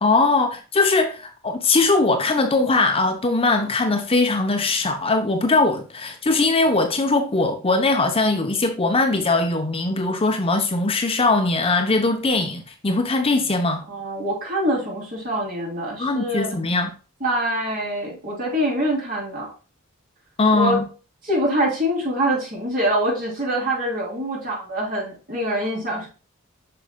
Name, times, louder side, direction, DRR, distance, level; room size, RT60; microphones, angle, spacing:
voice 1, 0.0-13.8 16.0-16.9 20.4-20.9, left 3 dB, 25° left, 0.8 m, -20 dB
voice 2, 13.9-16.5 17.2-19.5 20.5-20.8 21.2-26.1, right 1 dB, 45° right, 3.4 m, -24 dB
7.7 x 6.1 x 2.2 m
head